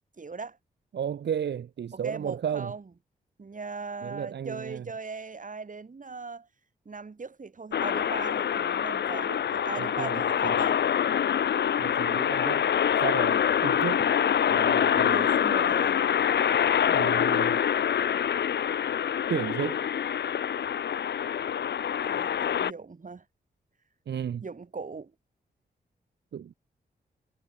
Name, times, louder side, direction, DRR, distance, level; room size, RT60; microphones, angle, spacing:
voice 1, 0.2-0.6 1.9-2.8 3.4-6.5 6.8-10.8 13.9-14.0 14.7-16.1 22.0-23.2 24.4-25.1, right 4 dB, 50° right, 4.6 m, -39 dB
voice 2, 0.9-2.7 4.0-4.8 9.7-10.7 11.8-12.6 13.0-14.1 14.5-15.3 16.9-17.6 19.3-19.8 24.1-24.4 26.3-26.5, right 8 dB, 80° right, 1.7 m, -33 dB
sound 1, 7.7-22.7, left 9 dB, 75° left, 1.0 m, -25 dB
cardioid pair, 50°, 18 cm